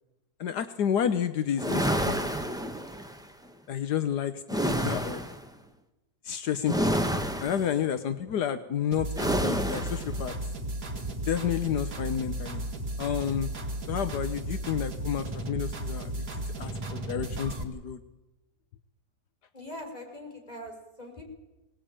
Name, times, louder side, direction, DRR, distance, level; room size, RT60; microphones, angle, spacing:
voice 1, 0.4-2.5 3.7-5.3 6.2-10.3 11.3-12.7 13.0-13.5 13.9-16.3 16.6-18.0, left 9 dB, 80° left, 10 dB, 1.5 m, -31 dB
sound 1, 1.6-3.2 4.5-5.4 6.7-7.7 9.2-10.1, equal, 5° right, 1.1 m, -29 dB
sound 2, 8.9-17.6, right 1 dB, 80° right, 3.1 m, -34 dB
voice 2, 19.5-21.2, left 1 dB, 25° left, 1 dB, 5.2 m, -42 dB
22.5 x 19.0 x 8.9 m, 1.0 s
omnidirectional pair, 1.7 m